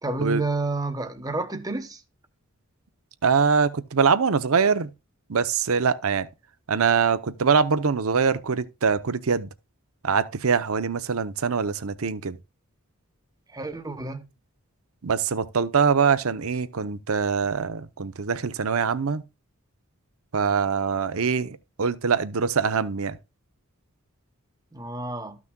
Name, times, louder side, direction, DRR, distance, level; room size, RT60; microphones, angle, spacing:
voice 1, 0.0-2.0 13.5-14.3 24.7-25.4, right 3 dB, 15° right, 1.0 m, -30 dB
voice 2, 3.2-4.9 5.3-6.3 6.7-9.5 10.0-12.4 15.0-19.2 20.3-23.2, right 5 dB, 70° right, 0.7 m, -23 dB
13.5 x 6.1 x 2.3 m
head